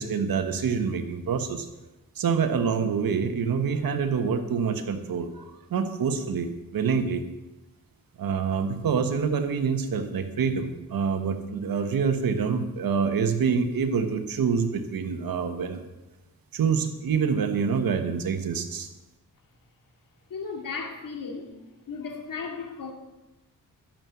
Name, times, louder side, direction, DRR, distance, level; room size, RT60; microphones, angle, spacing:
voice 1, 0.0-1.7 2.2-5.4 5.7-7.2 8.2-15.8 16.5-18.9, right 6 dB, 80° right, 8 dB, 1.3 m, -26 dB
voice 2, 20.3-21.5 21.9-22.9, left 5 dB, 70° left, 2 dB, 2.5 m, -35 dB
12.5 x 7.7 x 7.0 m, 1.1 s
cardioid pair, 60°, 34 cm